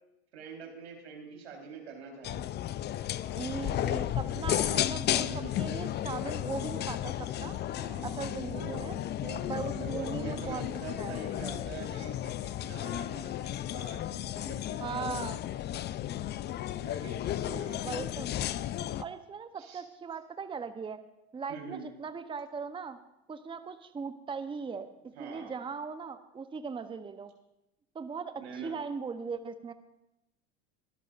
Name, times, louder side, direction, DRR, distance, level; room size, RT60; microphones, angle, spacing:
voice 1, 0.3-2.5 5.1-5.7 7.5-8.9 9.2-14.1 14.3-15.1 16.8-17.9 19.6-19.8 21.5-21.8 25.2-25.6 28.4-28.7, right 5 dB, 85° right, 1 dB, 4.1 m, -45 dB
sound 1, 2.2-19.0, left 12 dB, 30° left, 0.5 m, -34 dB
voice 2, 3.4-7.6 8.0-8.9 9.5-10.6 11.0-11.2 14.8-15.4 17.8-18.3 19.0-21.0 21.3-23.0 23.3-24.9 25.2-27.3 27.9-29.7, right 5 dB, 15° right, 9 dB, 0.8 m, -39 dB
23.0 x 12.5 x 2.5 m, 0.90 s
hypercardioid pair, 90°, 33 cm